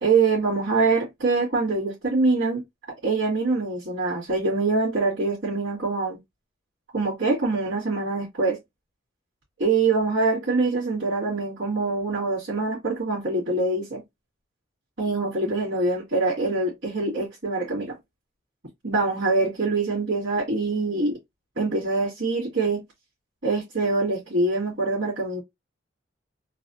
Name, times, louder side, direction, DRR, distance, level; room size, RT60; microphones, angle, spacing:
voice 1, 0.0-2.6 3.0-6.2 6.9-8.6 9.6-14.0 15.0-18.0 18.8-21.2 21.6-22.8 23.4-25.4, right 3 dB, 75° right, 2.2 m, -24 dB
4.0 x 2.2 x 2.7 m
head